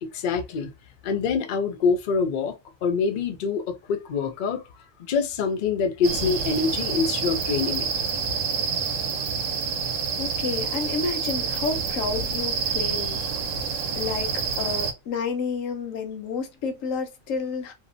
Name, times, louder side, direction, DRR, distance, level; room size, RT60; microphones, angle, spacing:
voice 1, 0.0-0.7 1.0-4.6 5.0-7.9, left 5 dB, 60° left, 0.5 m, -25 dB
sound 1, 6.0-14.9, right 6 dB, 75° right, 1.0 m, -28 dB
voice 2, 10.2-13.2 14.0-17.7, left 5 dB, 80° left, 1.0 m, -30 dB
2.7 x 2.0 x 2.5 m
omnidirectional pair, 1.4 m